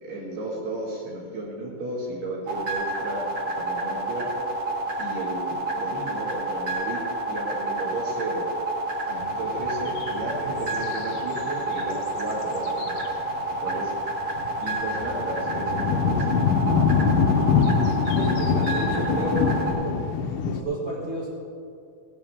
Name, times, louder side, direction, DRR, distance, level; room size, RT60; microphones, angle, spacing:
voice 1, 0.0-3.3 3.6-4.3 5.0-7.0 7.3-8.5 9.0-13.0 13.5-13.9 14.6-16.6, right 2 dB, 60° right, -5 dB, 3.8 m, -34 dB
sound 1, 2.5-19.7, right 2 dB, 45° right, 3.0 m, -29 dB
sound 2, 9.2-11.5 11.7-11.9 12.2-13.8 14.4-20.6, left 6 dB, 85° left, 3.4 m, -24 dB
voice 2, 18.1-20.0 20.4-21.3, right 2 dB, 85° right, -6 dB, 1.2 m, -31 dB
18.0 x 9.8 x 3.6 m, 2.5 s
omnidirectional pair, 5.6 m